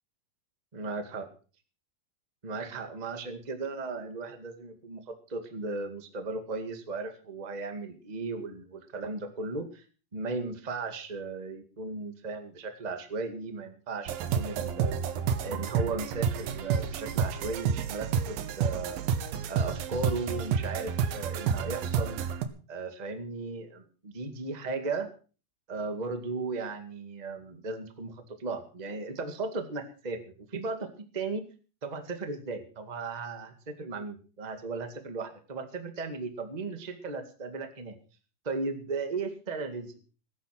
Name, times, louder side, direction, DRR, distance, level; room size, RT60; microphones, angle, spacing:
voice 1, 0.7-1.3 2.4-9.8 10.1-15.1 15.4-19.0 19.5-22.2 22.7-25.1 25.7-30.9 31.1-31.4 31.8-37.9 38.4-40.0, right 3 dB, 20° right, 7 dB, 1.0 m, -36 dB
sound 1, 14.1-22.5, right 7 dB, 70° right, 2.8 m, -30 dB
18.5 x 10.0 x 5.9 m, 0.38 s
omnidirectional pair, 4.5 m